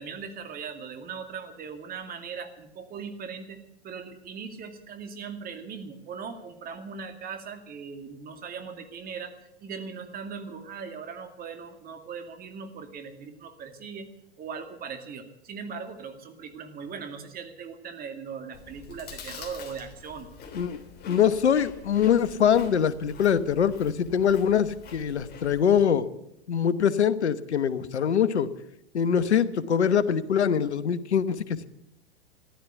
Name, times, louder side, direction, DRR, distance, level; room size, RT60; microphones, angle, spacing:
voice 1, 0.0-9.3 9.6-14.1 14.4-20.3, right 6 dB, 25° right, 7 dB, 2.3 m, -39 dB
Chewing mastication, 18.5-25.8, left 4 dB, 30° left, 3.3 m, -46 dB
voice 2, 21.1-26.1 26.5-28.5 28.9-31.7, left 8 dB, 80° left, 15 dB, 1.1 m, -23 dB
15.0 x 11.5 x 8.0 m, 0.83 s
hypercardioid pair, 110°, 33 cm